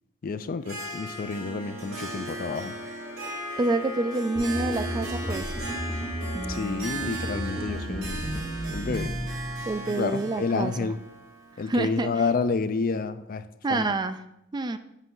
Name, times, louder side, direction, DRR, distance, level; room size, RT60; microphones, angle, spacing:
voice 1, 0.2-2.8 6.5-8.3 8.7-9.1 9.9-11.0 11.6-13.4 13.7-13.9, left 4 dB, 45° left, 12 dB, 0.4 m, -29 dB
Harp, 0.6-12.5, right 2 dB, 85° right, 3.1 m, -38 dB
sound 1, 1.8-6.9, left 3 dB, 45° right, 3.2 m, -49 dB
voice 2, 3.6-5.5 9.7-10.9 11.6-12.1 13.6-14.2 14.5-14.8, right 2 dB, 20° right, 10 dB, 0.3 m, -27 dB
sound 2, 4.4-9.7, equal, 5° right, 1.2 m, -33 dB
8.2 x 5.3 x 3.8 m, 0.82 s
head